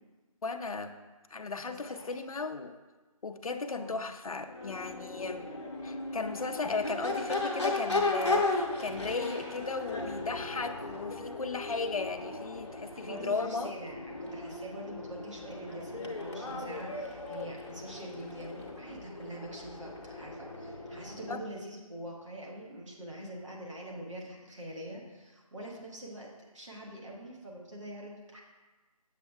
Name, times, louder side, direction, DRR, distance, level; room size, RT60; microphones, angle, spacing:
voice 1, 0.4-0.9 1.3-2.8 3.2-5.5 5.8-13.7 21.3-21.4, left 4 dB, 70° left, 7 dB, 0.5 m, -36 dB
voice 2, 1.7-2.2 3.7-4.0 12.9-28.4, right 1 dB, 55° right, -2 dB, 1.4 m, -44 dB
Crowd / Race car auto racing / Accelerating revving vroom, 4.4-21.5, left 2 dB, 50° left, 0.9 m, -36 dB
7.2 x 5.9 x 2.3 m, 1.2 s
figure-of-eight pair, 160°, 19 cm